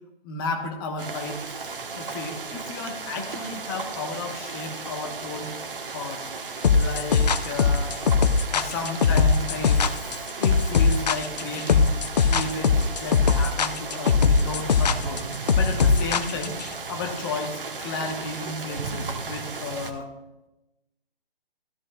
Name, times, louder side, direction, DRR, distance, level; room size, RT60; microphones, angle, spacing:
voice 1, 0.2-1.4 1.9-5.5 5.9-6.3 6.7-8.0 8.5-9.9 10.4-12.0 12.3-15.2 15.5-16.6 16.9-20.1, left 3 dB, 25° left, 4 dB, 1.1 m, -33 dB
sound 1, 1.0-19.9, right 4 dB, 65° right, 1.2 m, -35 dB
sound 2, 6.6-16.7, left 5 dB, 45° left, 0.5 m, -20 dB
13.0 x 12.5 x 2.3 m, 0.97 s
figure-of-eight pair, 140°, 30 cm